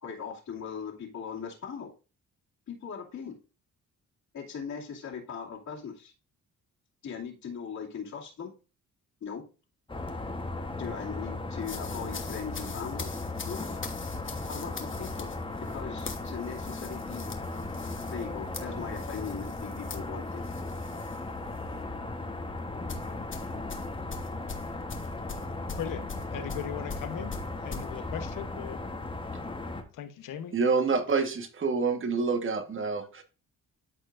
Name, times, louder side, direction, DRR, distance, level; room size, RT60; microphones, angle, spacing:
voice 1, 0.0-1.9 2.7-3.4 4.3-6.1 7.0-8.5 9.2-9.4 10.8-13.1 13.4-13.7 14.5-15.3 15.7-17.3 18.1-20.4, left 6 dB, 60° left, 2.5 m, -39 dB
sound 1, 9.9-29.8, left 2 dB, 15° left, 1.1 m, -36 dB
sound 2, 11.6-21.2 21.5-21.8 22.9-27.9, left 5 dB, 40° left, 1.3 m, -43 dB
voice 2, 25.8-27.3 27.6-28.8 29.9-30.5, left 9 dB, 80° left, 1.0 m, -38 dB
voice 3, 30.5-33.2, right 4 dB, 40° right, 1.4 m, -27 dB
12.5 x 4.5 x 2.5 m
cardioid pair, 95°, 32 cm